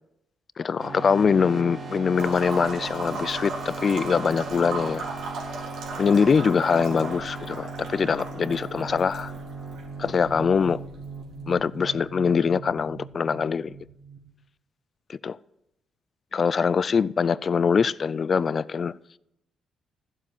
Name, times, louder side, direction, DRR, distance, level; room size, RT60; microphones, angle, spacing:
voice 1, 0.6-5.1 6.0-9.3 10.0-10.8 11.5-13.8 15.1-15.4 16.3-19.0, left 6 dB, 45° left, 0.4 m, -23 dB
sound 1, 0.8-14.3, right 3 dB, 50° right, 3.5 m, -38 dB
sound 2, 2.2-11.9, right 3 dB, 80° right, 3.4 m, -37 dB
14.0 x 7.3 x 8.6 m
cardioid pair, 90°, 0 cm